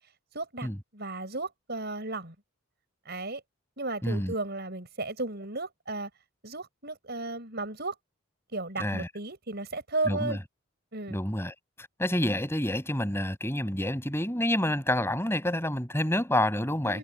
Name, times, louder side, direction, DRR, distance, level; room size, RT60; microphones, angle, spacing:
voice 1, 0.3-0.7 0.9-2.3 3.0-3.4 3.8-6.1 6.4-7.9 8.5-10.4 10.9-11.2 16.9-17.0, right 2 dB, 50° right, 6.5 m, -34 dB
voice 2, 4.0-4.3 8.8-9.1 10.1-10.4 11.1-11.5 12.0-17.0, left 1 dB, 10° left, 6.3 m, -28 dB
head